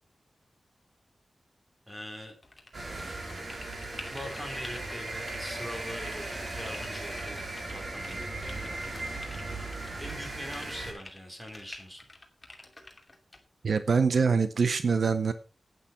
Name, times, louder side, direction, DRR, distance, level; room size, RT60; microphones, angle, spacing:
voice 1, 1.9-2.3 4.1-8.7 10.0-12.1, equal, 10° right, 3 dB, 4.2 m, -42 dB
sound 1, 2.4-5.6 5.9-7.7 8.0-10.2 10.5-13.4, left 2 dB, 20° left, 2.7 m, -48 dB
sound 2, 2.7-10.9, right 2 dB, 50° right, 4.6 m, -37 dB
voice 2, 13.6-15.3, right 5 dB, 70° right, 11 dB, 0.8 m, -24 dB
11.5 x 9.5 x 4.6 m, 0.35 s
wide cardioid pair, 110°, 0 cm